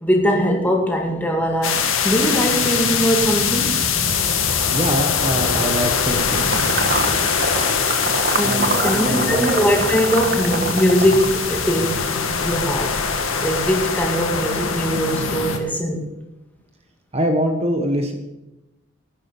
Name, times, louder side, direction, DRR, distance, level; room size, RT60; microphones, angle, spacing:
voice 1, 0.0-3.9 8.4-13.0 13.4-16.1, equal, 10° left, 1 dB, 2.1 m, -21 dB
sound 1, 1.6-15.6, left 6 dB, 85° left, 1.8 m, -22 dB
voice 2, 4.7-6.6 8.4-9.5 17.1-18.1, right 1 dB, 30° right, 5 dB, 1.1 m, -23 dB
sound 2, 6.4-11.6, right 4 dB, 45° right, 1.3 m, -26 dB
12.0 x 10.0 x 6.8 m, 0.98 s
head